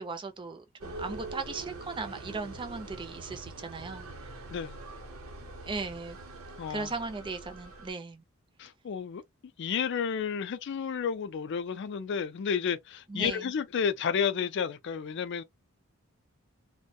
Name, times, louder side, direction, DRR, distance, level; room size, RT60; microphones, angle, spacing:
voice 1, 0.0-4.1 5.6-6.2 6.7-8.2 13.1-13.5, right 4 dB, 20° right, 0.4 m, -37 dB
sound 1, 0.8-7.9, right 2 dB, 70° right, 0.8 m, -44 dB
voice 2, 4.5-4.8 6.6-6.9 8.6-9.2 9.6-15.4, left 7 dB, 55° left, 0.4 m, -31 dB
2.2 x 2.1 x 2.7 m
head